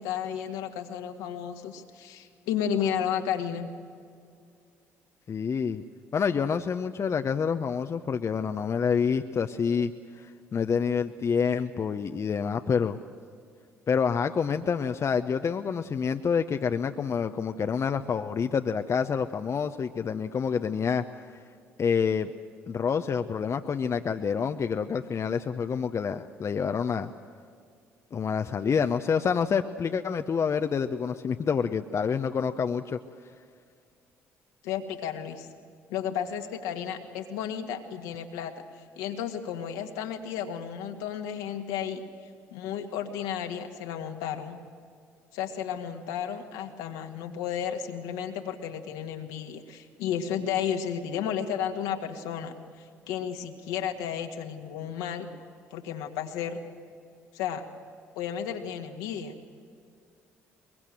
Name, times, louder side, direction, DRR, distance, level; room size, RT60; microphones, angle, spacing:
voice 1, 0.0-3.7 34.6-35.5 35.9-38.5 39.0-42.0 42.5-44.6 45.3-55.3 55.7-56.6 57.3-57.6 58.2-59.3, left 8 dB, 75° left, 4 dB, 1.9 m, -33 dB
voice 2, 5.3-5.8 6.1-10.3 10.5-13.0 13.9-21.0 21.8-22.3 22.7-27.1 28.1-33.0, left 6 dB, 45° left, 8 dB, 0.9 m, -27 dB
23.0 x 22.0 x 7.7 m, 2.2 s
hypercardioid pair, 50°, 7 cm